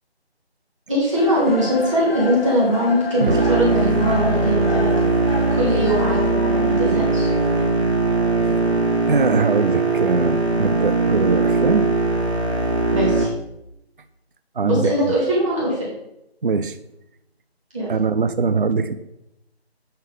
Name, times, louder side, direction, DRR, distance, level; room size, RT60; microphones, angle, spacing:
voice 1, 0.9-4.9 5.5-7.3 12.9-13.3 14.6-15.9 17.7-17.9, right 1 dB, 30° right, -6 dB, 2.6 m, -21 dB
sound 1, 1.1-7.7, left 4 dB, 60° left, 0.8 m, -32 dB
sound 2, 3.3-13.2, right 3 dB, 75° right, 1.6 m, -20 dB
voice 2, 9.1-11.9 14.6-14.9 16.4-16.8 17.9-18.9, right 4 dB, 55° right, 12 dB, 0.4 m, -22 dB
6.7 x 4.6 x 5.0 m, 0.84 s
figure-of-eight pair, 165°, 32 cm